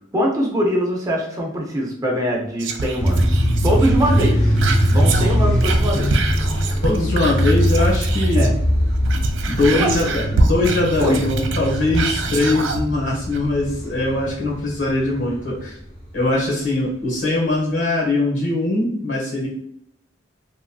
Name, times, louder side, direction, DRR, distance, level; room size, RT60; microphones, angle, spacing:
voice 1, 0.1-4.6 4.9-6.1 8.3-8.5 9.7-10.0 11.0-11.2, equal, 20° right, -1 dB, 0.5 m, -22 dB
Whispering, 2.6-8.6 8.9-12.9 13.3-13.4, right 3 dB, 70° right, 0.4 m, -25 dB
sound 1, 3.0-16.1, equal, 35° left, 0.9 m, -21 dB
voice 2, 6.8-8.5 9.5-15.7 16.1-19.5, left 2 dB, 80° left, -3 dB, 1.4 m, -21 dB
3.1 x 2.5 x 2.3 m, 0.71 s
head